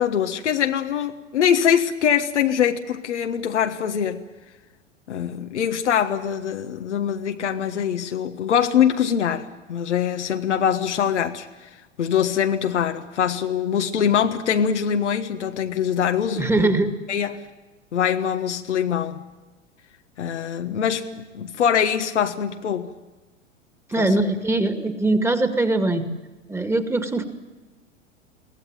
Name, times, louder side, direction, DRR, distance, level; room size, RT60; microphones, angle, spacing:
voice 1, 0.0-4.2 5.1-11.5 12.0-16.7 17.1-17.4 17.9-19.2 20.2-22.9 24.0-24.1, left 8 dB, 70° left, 6 dB, 1.5 m, -23 dB
voice 2, 16.4-16.9 23.9-26.1 26.5-27.2, right 2 dB, 5° right, 8 dB, 2.1 m, -21 dB
23.0 x 17.5 x 9.0 m, 1.2 s
figure-of-eight pair, 95°, 36 cm